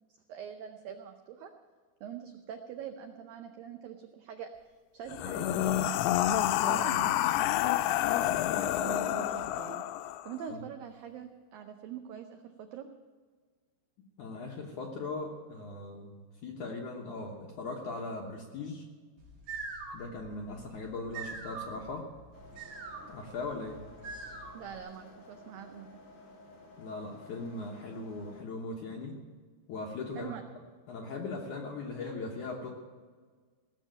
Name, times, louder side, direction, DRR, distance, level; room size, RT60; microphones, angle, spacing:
voice 1, 0.3-1.5 2.0-4.5 4.9-6.1 6.6-7.2 8.6-9.8 10.3-12.9 23.0-23.1 24.5-26.0 30.2-30.4, right 8 dB, 85° right, 6 dB, 2.0 m, -44 dB
sound 1, 5.1-10.3, left 12 dB, 85° left, 2.3 m, -28 dB
voice 2, 6.6-7.4 10.5-10.6 14.2-16.2 16.4-18.8 19.9-22.1 23.1-23.8 26.8-29.1 29.7-30.4 30.9-32.7, left 3 dB, 65° left, 0 dB, 1.9 m, -39 dB
sound 2, 19.2-24.8, right 4 dB, 55° right, 4.0 m, -44 dB
sound 3, 22.3-28.4, left 2 dB, 50° left, 3.8 m, -54 dB
17.0 x 7.3 x 9.0 m, 1.5 s
omnidirectional pair, 5.1 m